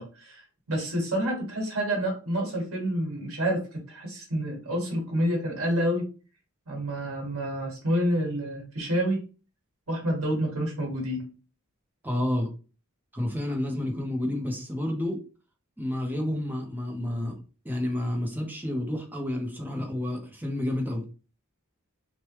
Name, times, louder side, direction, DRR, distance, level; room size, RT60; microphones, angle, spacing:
voice 1, 0.0-6.1 6.7-9.2 9.9-11.3, equal, 70° right, 0 dB, 1.5 m, -28 dB
voice 2, 12.0-12.5 13.1-15.2 15.8-21.0, left 1 dB, 10° right, 1 dB, 0.6 m, -30 dB
3.2 x 2.2 x 3.0 m, 0.35 s
head